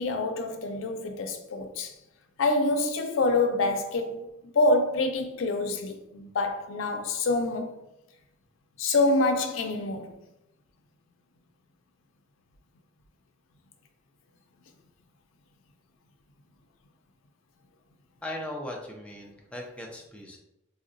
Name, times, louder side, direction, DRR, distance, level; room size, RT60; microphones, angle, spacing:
voice 1, 0.0-1.9 2.4-4.3 4.5-7.7 8.8-10.2, left 2 dB, 90° left, 0.4 m, -26 dB
voice 2, 18.2-20.4, left 1 dB, 5° left, 0.4 m, -38 dB
3.7 x 2.1 x 2.5 m
head